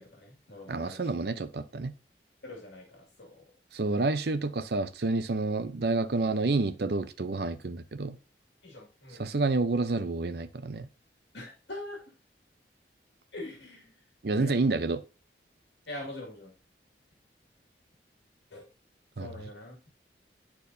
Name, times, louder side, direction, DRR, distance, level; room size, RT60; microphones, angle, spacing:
voice 1, 0.0-1.1 2.4-3.4 8.6-9.3 11.3-12.0 13.3-14.0 14.3-14.8 15.9-16.5 18.5-18.7 19.2-19.8, left 1 dB, 80° left, 2.1 m, -43 dB
voice 2, 0.7-1.9 3.7-8.2 9.2-10.9 14.2-15.0 19.2-19.3, right 3 dB, 65° right, 0.6 m, -29 dB
10.0 x 4.5 x 2.6 m
head